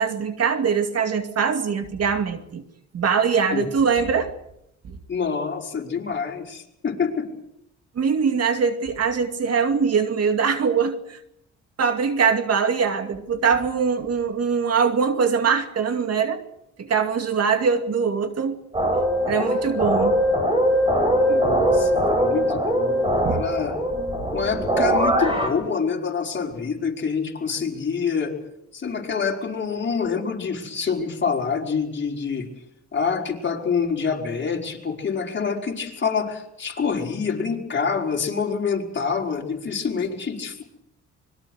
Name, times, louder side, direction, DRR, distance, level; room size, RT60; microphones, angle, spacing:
voice 1, 0.0-2.6 2.9-4.3 4.9-5.0 8.0-11.2 11.8-16.4 16.8-18.6 19.3-20.3 23.2-23.4, right 6 dB, 55° right, 7 dB, 2.4 m, -22 dB
voice 2, 5.1-7.3 21.3-23.7 24.3-28.4 28.7-32.5 32.9-40.6, left 5 dB, 40° left, 0 dB, 5.2 m, -26 dB
sound 1, 18.7-25.5, equal, 15° right, 7.0 m, -21 dB
25.0 x 22.0 x 6.5 m, 0.79 s
cardioid pair, 90°, 30 cm